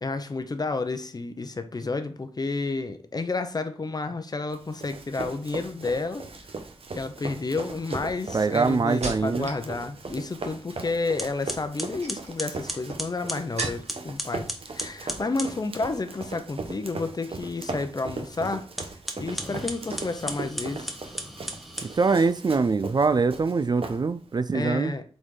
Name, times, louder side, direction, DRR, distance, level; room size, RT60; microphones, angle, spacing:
voice 1, 0.0-6.3 7.0-18.7 19.2-21.0 24.5-25.0, left 3 dB, 35° left, 0.7 m, -31 dB
Run, 4.5-24.4, right 3 dB, 60° right, 1.1 m, -39 dB
sound 1, 6.3-6.6 7.3-9.7 10.0-10.5 11.7-14.1 14.4-15.1 15.4-15.6, right 3 dB, 80° right, 1.7 m, -39 dB
voice 2, 8.3-9.5 21.8-24.9, right 4 dB, 40° right, 0.4 m, -23 dB
sound 2, 11.2-15.6 18.7-22.3, equal, ahead, 1.0 m, -36 dB
7.8 x 4.2 x 3.8 m
wide cardioid pair, 125°, 11 cm